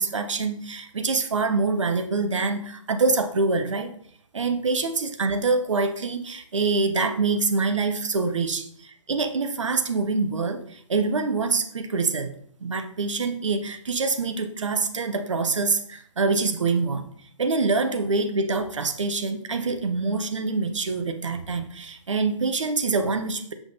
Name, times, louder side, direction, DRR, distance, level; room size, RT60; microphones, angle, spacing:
voice 1, 0.0-3.9 4.3-12.3 12.6-17.1 17.4-23.5, right 4 dB, 65° right, 7 dB, 0.9 m, -25 dB
7.2 x 5.8 x 2.7 m, 0.65 s
figure-of-eight pair, 130°, 17 cm